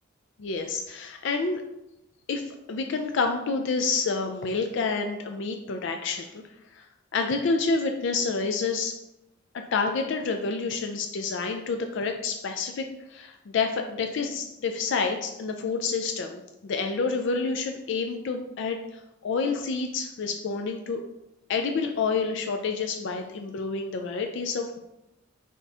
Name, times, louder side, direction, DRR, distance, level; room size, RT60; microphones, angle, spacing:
voice 1, 0.4-1.6 2.3-6.4 6.7-6.8 7.1-8.9 9.5-18.8 19.2-21.0 21.5-24.8, left 4 dB, 60° left, 5 dB, 0.4 m, -28 dB
4.1 x 3.8 x 3.4 m, 0.89 s
head